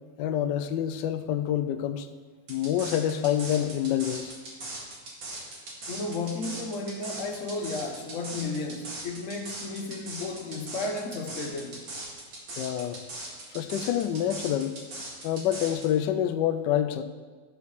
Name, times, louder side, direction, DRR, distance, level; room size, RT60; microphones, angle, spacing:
voice 1, 0.2-2.1 2.5-4.3 12.6-13.0 13.5-14.7 15.2-17.0, left 10 dB, 75° left, 1.1 m, -27 dB
sound 1, 2.5-15.8, right 2 dB, 75° right, 2.8 m, -39 dB
voice 2, 5.9-11.8, left 3 dB, 50° left, 1.0 m, -33 dB
13.0 x 5.1 x 6.5 m
omnidirectional pair, 2.1 m